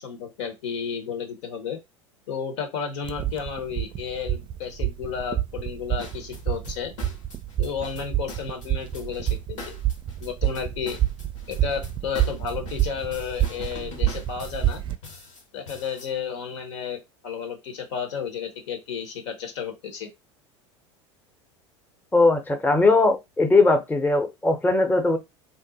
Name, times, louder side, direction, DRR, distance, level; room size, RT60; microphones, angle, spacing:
voice 1, 0.0-1.8 2.3-6.9 7.6-9.7 10.2-11.0 11.5-14.8 15.5-20.1, left 7 dB, 70° left, 1.1 m, -32 dB
sound 1, 3.0-15.0, right 12 dB, 30° right, 0.5 m, -28 dB
sound 2, 6.0-16.1, left 4 dB, 85° left, 1.4 m, -43 dB
voice 2, 22.1-25.2, left 3 dB, 10° left, 0.8 m, -19 dB
2.7 x 2.0 x 4.0 m
hypercardioid pair, 85°, 15 cm